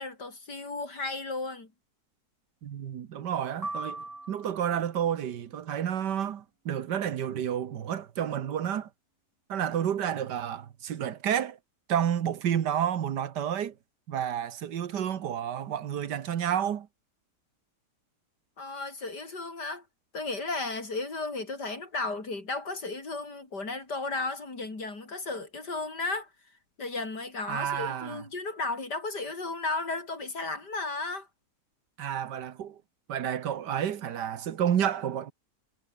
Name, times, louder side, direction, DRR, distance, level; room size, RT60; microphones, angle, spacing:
voice 1, 0.0-1.7 18.6-19.8 20.1-26.3 26.8-31.3, left 3 dB, 85° left, 5.4 m, -34 dB
voice 2, 2.6-8.9 9.5-11.6 11.9-13.8 14.1-16.9 27.5-28.2 32.0-32.8 33.1-35.3, right 9 dB, 90° right, 1.8 m, -30 dB
sound 1, 3.6-4.9, right 2 dB, 15° right, 0.9 m, -38 dB
omnidirectional pair, 1.8 m